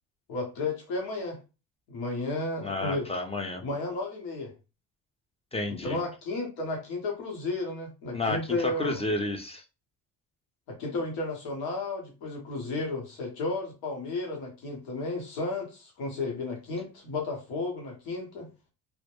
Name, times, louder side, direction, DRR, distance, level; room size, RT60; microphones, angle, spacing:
voice 1, 0.3-1.4 1.9-3.1 3.6-4.5 5.8-9.0 10.7-18.5, left 2 dB, 85° left, 0 dB, 1.0 m, -33 dB
voice 2, 2.6-3.6 5.5-6.0 8.1-9.6, left 2 dB, 15° left, 4 dB, 0.5 m, -31 dB
2.1 x 2.1 x 2.9 m, 0.30 s
supercardioid pair, 70°, 37 cm